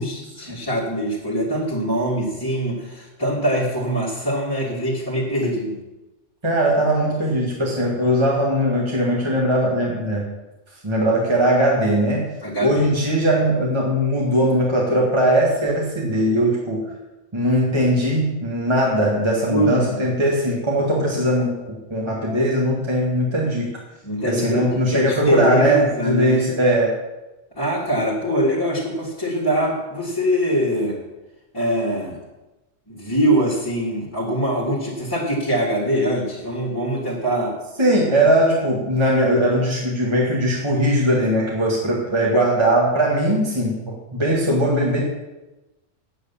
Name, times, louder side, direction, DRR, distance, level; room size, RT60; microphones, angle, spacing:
voice 1, 0.0-5.8 12.4-12.9 19.5-20.0 24.0-26.4 27.6-31.0 31.5-32.2 32.9-37.6, equal, 20° left, -8 dB, 2.3 m, -23 dB
voice 2, 6.4-10.3 10.8-12.3 12.6-16.9 17.3-23.7 24.2-26.9 37.8-45.0, right 1 dB, 25° right, -3 dB, 1.8 m, -20 dB
9.5 x 8.0 x 7.0 m, 1.1 s
omnidirectional pair, 1.3 m